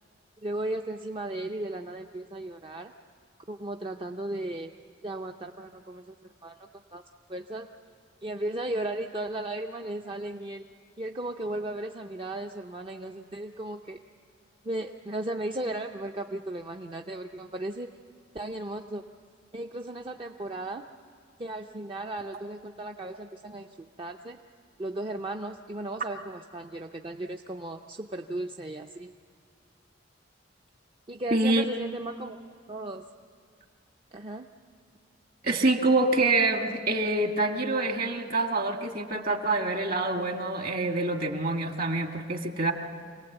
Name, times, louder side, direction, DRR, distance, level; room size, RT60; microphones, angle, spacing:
voice 1, 0.4-2.9 3.5-4.7 5.0-6.1 6.4-7.0 7.3-7.7 8.2-10.6 11.0-14.0 14.6-17.9 18.3-19.0 19.5-20.8 21.4-24.4 24.8-29.1 31.1-32.4 32.7-33.0 34.1-34.5, right 1 dB, 25° right, 3 dB, 0.6 m, -35 dB
voice 2, 31.3-31.6 35.4-42.7, right 2 dB, 50° right, 4 dB, 1.8 m, -26 dB
26.5 x 18.0 x 8.0 m, 2.1 s
head